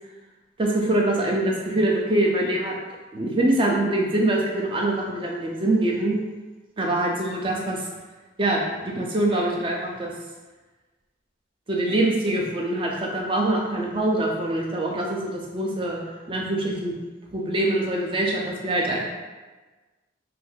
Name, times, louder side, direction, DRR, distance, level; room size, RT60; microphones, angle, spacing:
voice 1, 0.6-2.7 3.1-6.2 6.8-7.8 8.4-10.1 11.7-16.0 16.3-16.9 17.3-19.0, right 1 dB, 25° right, -1 dB, 0.4 m, -24 dB
2.7 x 2.5 x 3.6 m, 1.3 s
head